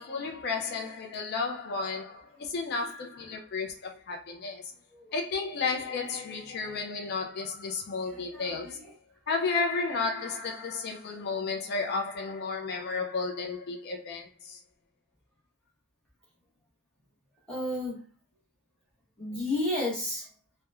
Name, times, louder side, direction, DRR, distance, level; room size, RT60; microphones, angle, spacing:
voice 1, 0.0-4.7 5.1-8.8 9.3-14.6, left 4 dB, 45° left, 0.4 m, -33 dB
voice 2, 8.1-8.9 17.5-18.0 19.2-20.3, left 1 dB, 5° left, 1.0 m, -33 dB
2.9 x 2.0 x 2.3 m
head